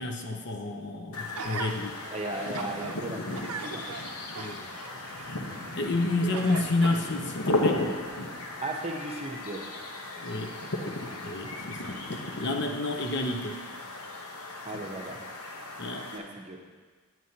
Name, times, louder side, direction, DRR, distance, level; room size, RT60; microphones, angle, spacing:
voice 1, 0.0-2.0 4.3-4.8 5.7-7.8 10.2-10.6 11.2-13.6 15.8-16.1, left 2 dB, 50° left, 4 dB, 0.7 m, -30 dB
sound 1, 1.1-16.2, left 1 dB, 80° left, 0.9 m, -35 dB
Gasp, 1.4-1.7 2.3-3.0 3.3-5.8 6.3-7.4 8.0-8.1, right 5 dB, 85° right, 0.5 m, -40 dB
voice 2, 2.1-3.8 8.6-9.6 14.6-15.2 16.1-16.6, right 2 dB, 30° right, 1 dB, 0.8 m, -36 dB
9.2 x 9.2 x 2.8 m, 1.4 s
head